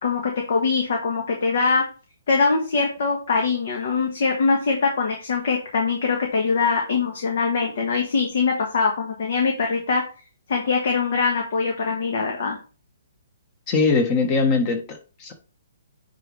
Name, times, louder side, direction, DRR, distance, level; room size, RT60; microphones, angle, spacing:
voice 1, 0.0-1.8 2.3-10.0 10.5-12.6, left 4 dB, 60° left, 1.5 m, -22 dB
voice 2, 13.7-15.3, left 4 dB, 30° left, 1.3 m, -21 dB
9.0 x 3.9 x 3.3 m
hypercardioid pair, 150°, 0 cm